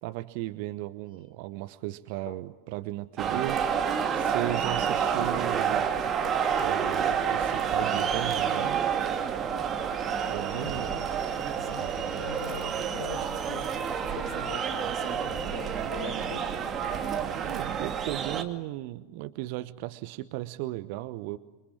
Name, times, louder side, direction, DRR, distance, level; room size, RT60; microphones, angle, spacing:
voice 1, 0.0-3.6 4.1-5.9 6.6-8.8 10.3-10.9 17.3-21.4, right 17 dB, 45° right, 13 dB, 1.0 m, -36 dB
sound 1, 3.2-18.4, right 7 dB, 25° right, 2.4 m, -29 dB
voice 2, 10.5-11.0 11.5-13.7 14.0-16.7, left 6 dB, 45° left, 4 dB, 5.0 m, -43 dB
27.5 x 24.0 x 8.8 m, 1.1 s
figure-of-eight pair, 90°, 0 cm